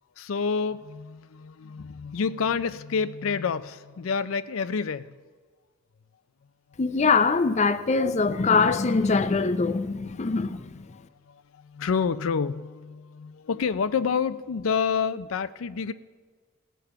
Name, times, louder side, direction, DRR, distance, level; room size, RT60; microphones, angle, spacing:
voice 1, 0.2-5.1 10.2-10.3 10.9-15.9, left 5 dB, 90° left, 0.5 m, -28 dB
voice 2, 6.8-10.9, left 4 dB, 35° left, 0.5 m, -23 dB
17.5 x 6.9 x 5.8 m
head